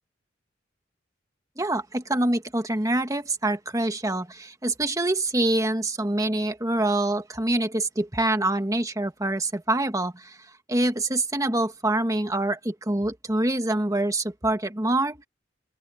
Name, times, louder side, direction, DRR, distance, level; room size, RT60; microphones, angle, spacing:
voice 1, 1.6-10.4 10.7-15.2, right 1 dB, 20° right, 1.7 m, -25 dB
open air
head